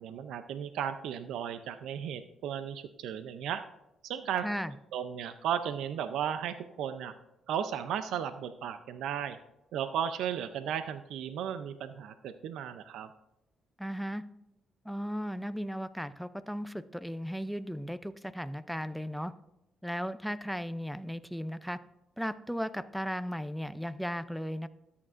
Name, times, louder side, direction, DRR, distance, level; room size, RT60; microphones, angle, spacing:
voice 1, 0.0-3.6 4.0-4.4 4.9-7.1 7.5-9.4 9.7-13.1, right 9 dB, 80° right, 10 dB, 0.5 m, -35 dB
voice 2, 4.4-4.7 13.8-14.2 14.8-19.3 19.8-21.8 22.2-24.7, equal, ahead, 14 dB, 0.5 m, -36 dB
13.5 x 8.5 x 2.5 m, 0.89 s
cardioid pair, 90°, 0 cm